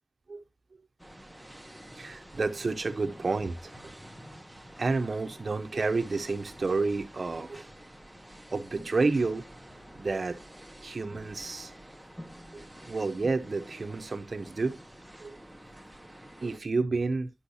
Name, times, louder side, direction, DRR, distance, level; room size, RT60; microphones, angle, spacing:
sound 1, 1.0-16.6, equal, 5° right, 1.1 m, -49 dB
voice 1, 2.0-3.7 4.8-7.7 8.5-9.4 10.0-10.4 10.8-11.7 12.5-14.8 15.2-15.4 16.4-17.3, right 3 dB, 55° right, 0.7 m, -30 dB
10.0 x 6.3 x 2.7 m
wide cardioid pair, 90°, 0 cm